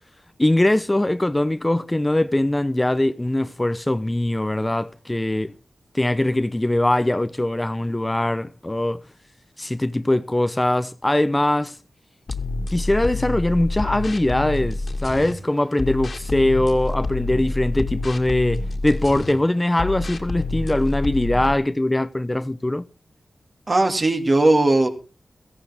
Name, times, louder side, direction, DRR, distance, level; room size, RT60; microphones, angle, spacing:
voice 1, 0.4-5.5 5.9-9.0 9.6-11.8 12.7-22.8, left 1 dB, 20° left, 0.7 m, -21 dB
sound 1, 12.3-15.3 15.8-19.3 19.8-21.6, left 2 dB, 60° left, 2.3 m, -28 dB
voice 2, 23.7-24.9, right 2 dB, 45° right, 2.8 m, -18 dB
16.0 x 14.5 x 3.6 m
cardioid pair, 40°, 0 cm